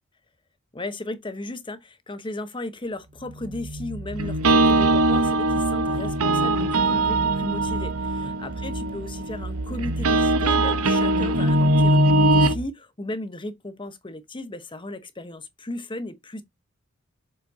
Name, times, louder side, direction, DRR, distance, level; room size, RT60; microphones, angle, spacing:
voice 1, 0.7-16.4, left 2 dB, 25° left, 1.0 m, -35 dB
sound 1, 3.2-12.7, right 2 dB, 55° right, 0.5 m, -33 dB
sound 2, 4.2-12.5, right 1 dB, 85° right, 0.8 m, -21 dB
6.7 x 5.6 x 2.7 m
head